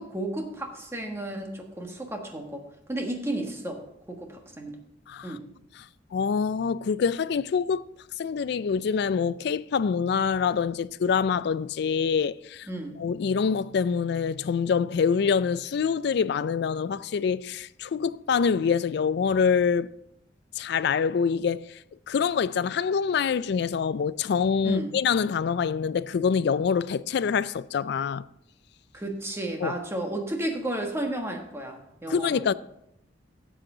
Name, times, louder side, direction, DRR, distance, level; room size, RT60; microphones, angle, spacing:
voice 1, 0.0-3.8 4.1-4.7 5.2-5.4 12.7-13.0 24.6-24.9 28.9-32.5, right 1 dB, 15° right, 1.4 m, -33 dB
voice 2, 5.1-5.4 5.8-5.9 6.1-7.9 8.2-12.7 13.0-19.9 20.6-21.8 22.1-28.2 29.6-29.7 32.1-32.5, left 6 dB, 65° left, 0.3 m, -25 dB
12.5 x 7.8 x 3.8 m
head